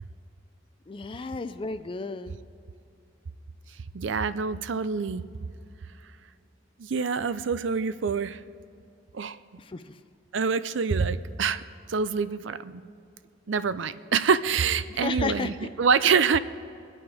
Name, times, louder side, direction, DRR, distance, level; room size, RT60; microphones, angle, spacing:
voice 1, 0.9-2.4 9.6-10.0 14.9-15.7, left 4 dB, 25° left, 9 dB, 0.4 m, -33 dB
voice 2, 3.9-5.2 6.8-8.4 9.1-9.4 10.3-11.6 11.9-12.9 13.5-16.4, right 5 dB, 70° right, 14 dB, 0.5 m, -26 dB
23.5 x 8.6 x 4.9 m, 2.5 s
head